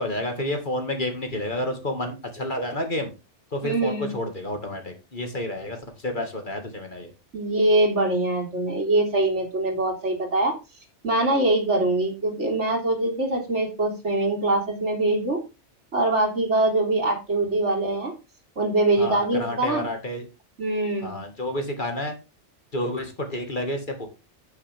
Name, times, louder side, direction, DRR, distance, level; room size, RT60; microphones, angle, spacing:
voice 1, 0.0-3.1 3.5-5.8 6.0-7.1 19.0-20.3 21.0-22.1 22.7-24.1, left 1 dB, 45° left, 4 dB, 2.3 m, -30 dB
voice 2, 3.6-4.1 7.3-10.5 11.0-15.4 15.9-18.1 18.6-19.9 20.6-21.2, right 2 dB, 75° right, 1 dB, 3.5 m, -23 dB
9.0 x 8.9 x 3.6 m, 0.27 s
omnidirectional pair, 1.2 m